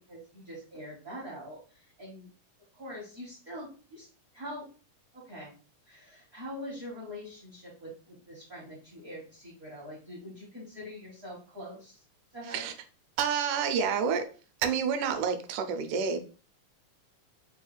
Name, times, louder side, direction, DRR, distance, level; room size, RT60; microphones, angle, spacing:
voice 1, 0.0-2.3 2.7-4.1 4.3-4.7 5.2-5.5 5.9-12.0 12.3-12.7, equal, 60° right, -5 dB, 0.9 m, -44 dB
voice 2, 13.2-14.3 14.6-16.2, right 6 dB, 80° right, 8 dB, 2.0 m, -29 dB
5.3 x 2.3 x 3.2 m, 0.37 s
omnidirectional pair, 3.9 m